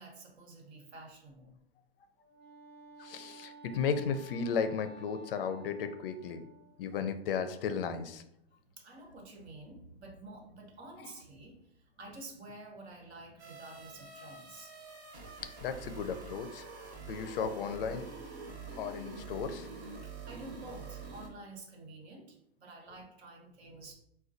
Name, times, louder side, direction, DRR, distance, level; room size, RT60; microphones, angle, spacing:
voice 1, 0.0-1.6 8.8-11.7 12.0-14.8 17.0-17.1 18.6-18.8 20.0-23.9, right 2 dB, 75° right, 1 dB, 1.0 m, -50 dB
Wind instrument woodwind instrument, 2.2-6.9, right 2 dB, 15° right, 0.4 m, -53 dB
voice 2, 3.0-6.5 6.8-8.2 11.0-11.1 15.6-16.7 17.0-18.1 18.8-19.7, left 6 dB, 60° left, 10 dB, 0.4 m, -35 dB
sound 1, 13.4-21.3, right 4 dB, 40° right, 0.8 m, -46 dB
4.3 x 2.3 x 2.5 m, 0.76 s
hypercardioid pair, 160°, 32 cm